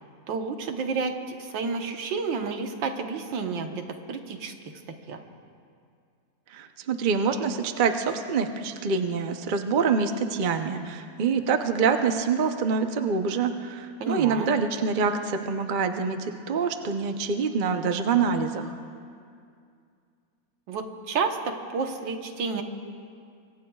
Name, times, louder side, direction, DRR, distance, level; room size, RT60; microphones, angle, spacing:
voice 1, 0.3-1.1 1.4-4.5 4.9-5.2 14.0-14.5 20.7-22.6, right 4 dB, 90° right, 4 dB, 1.8 m, -30 dB
voice 2, 6.5-18.7, right 5 dB, 50° right, 6 dB, 0.6 m, -26 dB
26.0 x 23.5 x 2.4 m, 2.3 s
omnidirectional pair, 2.0 m